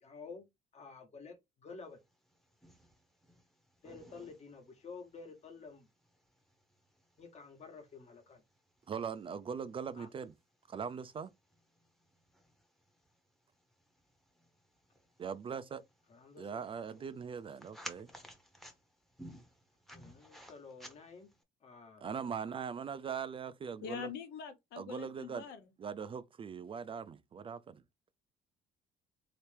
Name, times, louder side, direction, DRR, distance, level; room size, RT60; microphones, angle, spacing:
voice 1, 0.0-0.5 0.7-2.0 3.8-5.9 7.2-8.4 10.0-10.1 16.1-16.6 19.9-21.3 21.6-22.0, left 4 dB, 40° left, 1.2 m, -51 dB
sound 1, 2.0-21.4, equal, ahead, 0.9 m, -57 dB
voice 2, 8.9-10.3 10.7-11.3 15.2-15.8 16.4-18.1 22.0-24.1 24.8-25.4 25.8-27.8, right 6 dB, 30° right, 0.4 m, -41 dB
voice 3, 23.8-25.7, left 7 dB, 75° left, 1.0 m, -44 dB
3.2 x 3.0 x 3.3 m
cardioid pair, 110°, 17 cm